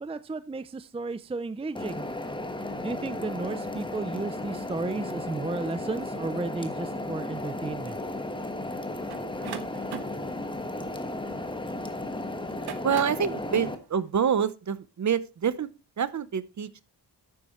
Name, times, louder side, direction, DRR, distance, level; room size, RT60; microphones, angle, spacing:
voice 1, 0.0-2.1 2.8-8.0, right 3 dB, 15° right, 14 dB, 0.5 m, -33 dB
sound 1, 1.8-13.8, left 2 dB, 10° left, 1.3 m, -34 dB
sound 2, 9.1-11.8 12.4-13.3, right 8 dB, 70° right, 1.4 m, -41 dB
voice 2, 12.8-15.7 16.0-16.8, right 7 dB, 45° right, 16 dB, 0.8 m, -27 dB
12.0 x 9.4 x 3.1 m, 0.28 s
wide cardioid pair, 155°, 40 cm